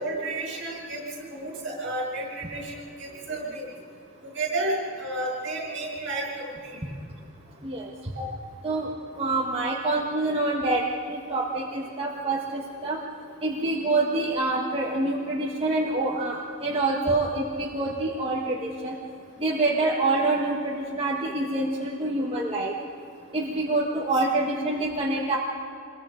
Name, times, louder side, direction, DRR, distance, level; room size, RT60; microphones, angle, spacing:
voice 1, 0.0-3.7 4.2-6.8 8.2-8.3, right 2 dB, 55° right, -1 dB, 7.0 m, -32 dB
voice 2, 9.2-13.0 13.4-18.9 19.4-22.7 23.3-25.4, right 2 dB, 25° right, -3 dB, 1.6 m, -26 dB
26.5 x 22.5 x 5.2 m, 2.5 s
head